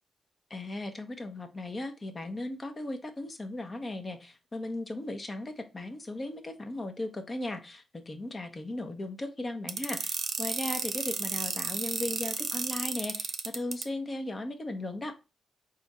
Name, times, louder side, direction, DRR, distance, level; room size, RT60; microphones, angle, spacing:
voice 1, 0.5-15.1, left 2 dB, 35° left, 6 dB, 0.9 m, -37 dB
sound 1, 9.7-13.8, right 5 dB, 65° right, 0.6 m, -32 dB
4.1 x 2.6 x 4.1 m, 0.29 s
cardioid pair, 70°, 0 cm